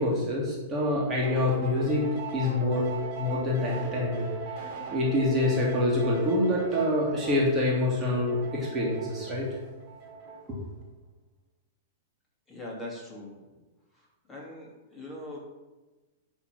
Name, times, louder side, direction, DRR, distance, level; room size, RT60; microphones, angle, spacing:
voice 1, 0.0-2.9 3.1-4.3 4.9-9.5 10.5-10.6, left 1 dB, 20° right, -4 dB, 2.2 m, -26 dB
sound 1, 1.2-10.6, right 4 dB, 40° right, 2.0 m, -39 dB
voice 2, 12.5-13.4 13.9-15.4, left 1 dB, 15° left, -4 dB, 2.6 m, -41 dB
10.5 x 3.6 x 6.0 m, 1.1 s
figure-of-eight pair, 100°, 0 cm